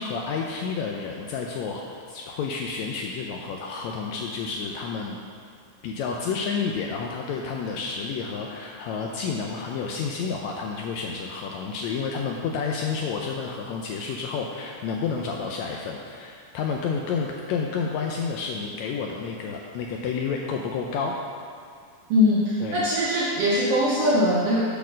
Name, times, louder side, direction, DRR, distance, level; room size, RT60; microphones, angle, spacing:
voice 1, 0.0-5.2 5.8-21.2 22.6-22.8, left 5 dB, 80° left, 0 dB, 1.6 m, -30 dB
voice 2, 22.1-24.6, left 1 dB, 70° right, -5 dB, 1.4 m, -21 dB
8.1 x 4.4 x 6.2 m, 2.2 s
omnidirectional pair, 3.6 m